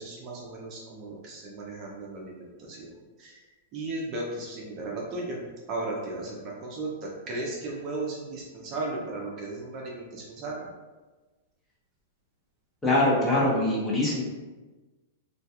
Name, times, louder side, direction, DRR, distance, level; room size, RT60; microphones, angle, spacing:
voice 1, 0.0-2.9 3.2-3.3 3.7-5.4 5.7-6.9 7.3-10.7, right 2 dB, 35° right, -2 dB, 0.4 m, -35 dB
voice 2, 12.8-14.2, left 1 dB, 10° left, -6 dB, 0.6 m, -23 dB
2.2 x 2.2 x 2.8 m, 1.2 s
supercardioid pair, 155°, 0 cm